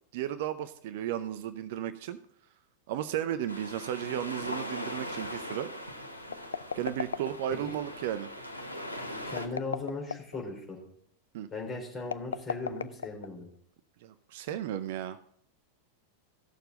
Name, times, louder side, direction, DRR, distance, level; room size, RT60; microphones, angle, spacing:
voice 1, 0.1-2.2 2.9-5.7 6.7-8.3 11.3-11.5 14.0-15.2, right 11 dB, 50° right, 12 dB, 0.6 m, -34 dB
sound 1, 3.5-9.5, left 1 dB, 90° right, 1.2 m, -40 dB
sound 2, 6.2-7.7 9.3-10.4 12.0-13.6, left 6 dB, 70° left, 0.4 m, -36 dB
voice 2, 9.3-10.8 11.5-13.5, left 3 dB, 20° left, 0 dB, 4.0 m, -38 dB
16.0 x 6.7 x 3.9 m, 0.68 s
figure-of-eight pair, 90°, 0 cm